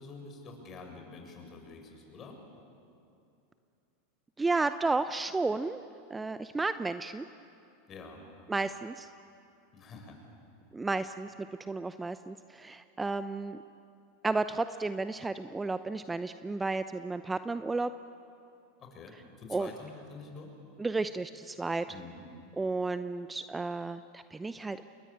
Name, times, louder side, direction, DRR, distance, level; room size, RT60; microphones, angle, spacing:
voice 1, 0.0-2.4 7.9-8.2 9.7-10.2 18.8-20.5 21.9-22.2, left 4 dB, 35° left, 3 dB, 7.2 m, -47 dB
voice 2, 4.4-5.8 6.1-7.2 8.5-9.1 10.7-11.3 11.6-13.6 14.2-17.9 19.5-19.7 20.8-21.8 22.6-24.8, right 3 dB, 15° right, 11 dB, 0.7 m, -32 dB
29.0 x 23.0 x 8.8 m, 2.6 s
hypercardioid pair, 95°, 0 cm